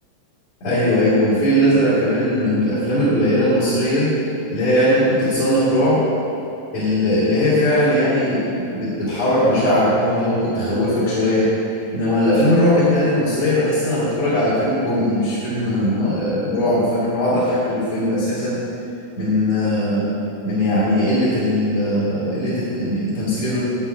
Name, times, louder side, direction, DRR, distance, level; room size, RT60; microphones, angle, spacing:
voice 1, 0.6-4.1 4.5-6.1 6.7-11.5 11.9-18.6 19.2-20.1 20.4-23.6, left 1 dB, 55° left, -12 dB, 3.8 m, -19 dB
13.0 x 4.8 x 8.9 m, 2.7 s
omnidirectional pair, 3.9 m